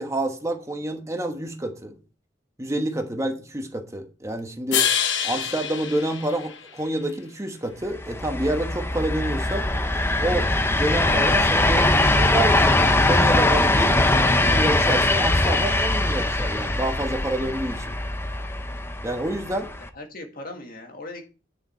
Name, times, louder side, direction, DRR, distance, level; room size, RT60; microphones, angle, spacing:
voice 1, 0.0-1.9 2.6-4.9 5.2-9.7 10.2-10.5 10.7-13.9 14.4-18.0 19.0-19.7, right 1 dB, 15° right, 1.1 m, -28 dB
sound 1, 4.7-7.1, left 8 dB, 85° left, 1.0 m, -26 dB
sound 2, 7.9-19.9, left 2 dB, 15° left, 0.6 m, -21 dB
voice 2, 19.8-21.2, left 2 dB, 50° left, 1.8 m, -39 dB
9.3 x 6.8 x 4.3 m
head